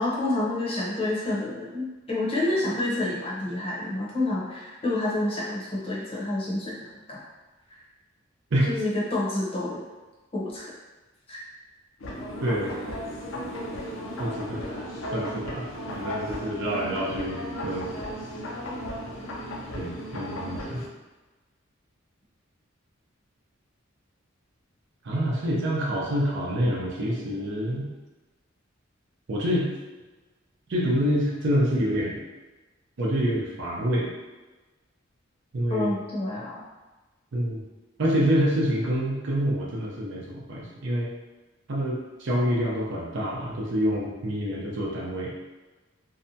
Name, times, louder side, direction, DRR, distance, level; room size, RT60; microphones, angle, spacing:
voice 1, 0.0-6.8 7.1-7.2 8.7-9.8 10.3-10.7 11.3-11.4 35.7-36.6, left 2 dB, 30° left, -6 dB, 0.7 m, -28 dB
sound 1, 12.0-20.9, equal, 75° left, 0.5 m, -35 dB
voice 2, 12.4-12.7 14.2-14.7 15.1-15.7 15.9-17.9 19.7-20.8 25.0-27.9 29.3-29.7 30.7-32.2 33.0-34.1 35.5-35.9 37.3-37.6 38.0-41.1 41.7-45.3, equal, 65° right, -3 dB, 0.6 m, -27 dB
2.7 x 2.2 x 2.6 m, 1.2 s
head